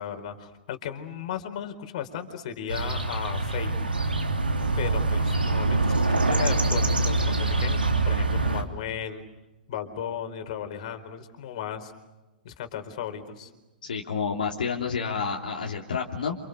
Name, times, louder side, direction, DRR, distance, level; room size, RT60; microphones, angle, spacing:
voice 1, 0.0-3.7 4.8-9.2 9.7-11.9 12.4-13.5, left 9 dB, 50° left, 7 dB, 4.3 m, -35 dB
sound 1, 2.7-8.6, right 2 dB, 85° right, 3.2 m, -24 dB
voice 2, 13.8-16.4, left 6 dB, 65° left, -1 dB, 3.2 m, -29 dB
29.5 x 28.5 x 6.6 m, 1.1 s
figure-of-eight pair, 115°, 5 cm